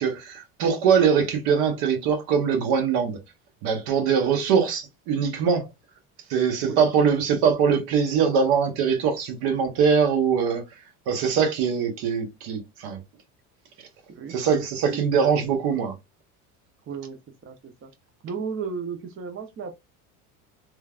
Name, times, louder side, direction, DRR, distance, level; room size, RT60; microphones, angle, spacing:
voice 1, 0.0-3.2 3.6-5.7 6.3-10.6 11.1-13.0 14.3-15.9, right 6 dB, 60° right, 1.1 m, -22 dB
voice 2, 16.9-17.2 17.4-17.9 18.2-19.7, right 5 dB, 30° right, 0.6 m, -34 dB
3.1 x 2.2 x 2.4 m
hypercardioid pair, 80°, 44 cm